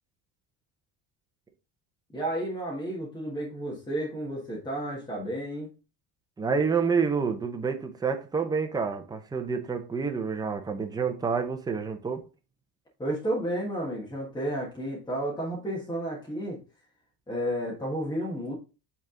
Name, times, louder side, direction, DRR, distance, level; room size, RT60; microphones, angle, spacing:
voice 1, 2.1-5.7 13.0-16.6 17.3-18.5, right 1 dB, 10° left, 1.4 m, -32 dB
voice 2, 6.4-12.3, right 5 dB, 10° right, 0.5 m, -28 dB
8.2 x 3.5 x 3.7 m
cardioid pair, 180°, 49 cm